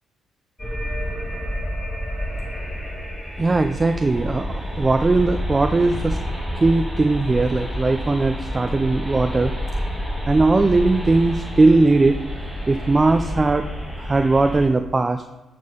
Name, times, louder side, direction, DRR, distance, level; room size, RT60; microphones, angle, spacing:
sound 1, 0.6-14.7, equal, 5° left, 2.5 m, -29 dB
voice 1, 3.4-6.2 6.6-9.5 10.3-12.2 12.7-13.6 14.0-15.2, right 3 dB, 25° right, 6 dB, 0.5 m, -19 dB
10.5 x 3.6 x 6.7 m, 1.0 s
cardioid pair, 90°, 0 cm